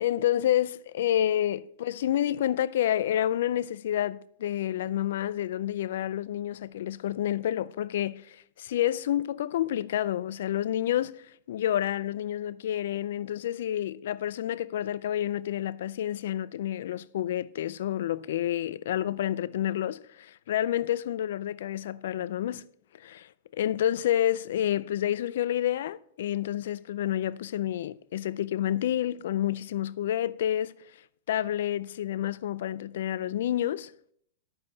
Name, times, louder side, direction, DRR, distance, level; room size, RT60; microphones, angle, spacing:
voice 1, 0.0-22.6 22.9-30.7 31.3-33.9, left 11 dB, 70° left, 0.4 m, -29 dB
10.0 x 8.7 x 2.7 m
hypercardioid pair, 130°, 0 cm